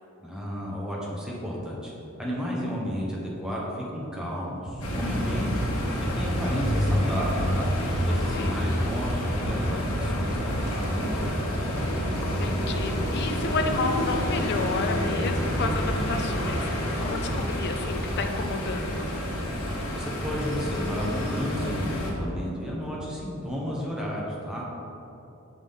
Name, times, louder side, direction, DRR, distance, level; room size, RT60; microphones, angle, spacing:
voice 1, 0.2-1.9 2.2-7.7 8.1-11.3 19.9-24.6, equal, 5° right, -5 dB, 1.1 m, -32 dB
sound 1, 4.6-16.4, right 1 dB, 20° right, 0.4 m, -34 dB
sound 2, 4.8-22.1, equal, 80° left, 1.2 m, -29 dB
voice 2, 8.1-8.6 12.1-16.7 17.0-19.2, left 3 dB, 50° left, 6 dB, 0.5 m, -31 dB
6.0 x 5.7 x 3.6 m, 2.9 s
head